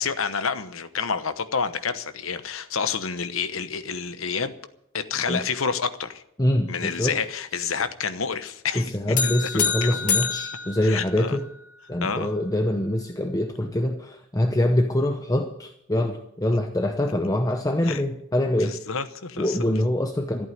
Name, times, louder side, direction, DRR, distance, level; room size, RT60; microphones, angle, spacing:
voice 1, 0.0-4.5 4.9-6.2 6.7-10.2 10.8-11.4 12.0-12.3 17.8-18.0 18.6-19.6, left 6 dB, 70° left, 1.0 m, -29 dB
voice 2, 6.4-7.2 8.7-11.5 11.9-18.8 19.4-20.5, left 1 dB, 15° left, 0.7 m, -24 dB
sound 1, 9.2-11.6, left 6 dB, 40° left, 1.5 m, -27 dB
14.5 x 8.7 x 9.4 m
head